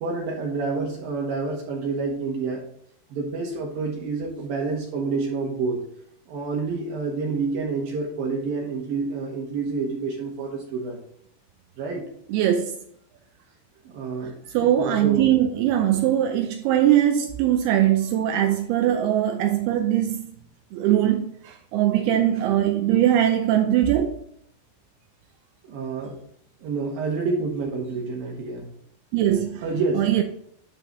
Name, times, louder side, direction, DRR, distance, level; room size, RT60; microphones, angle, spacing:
voice 1, 0.0-2.6 3.1-5.8 6.3-11.0 11.8-12.1 13.9-14.3 14.8-15.3 25.6-26.1 26.6-28.7 29.6-30.0, right 4 dB, 65° right, 2.9 m, -28 dB
voice 2, 12.3-12.8 14.5-20.3 20.7-24.2 29.1-29.6 30.0-30.2, right 11 dB, 85° right, 2.6 m, -21 dB
11.0 x 3.9 x 3.9 m
omnidirectional pair, 4.6 m